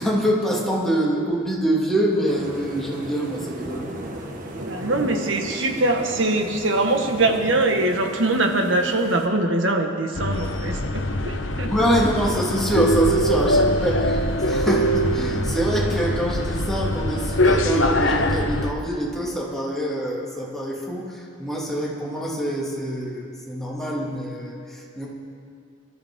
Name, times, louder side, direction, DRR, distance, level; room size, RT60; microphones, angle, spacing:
voice 1, 0.0-3.9 11.7-25.1, equal, ahead, -4 dB, 2.4 m, -25 dB
sound 1, 2.3-9.3, right 1 dB, 45° right, 1.6 m, -36 dB
voice 2, 4.6-11.7, right 2 dB, 85° right, 3 dB, 1.6 m, -22 dB
sound 2, 10.2-18.7, equal, 85° left, 1.0 m, -23 dB
24.0 x 13.5 x 3.7 m, 2.3 s
head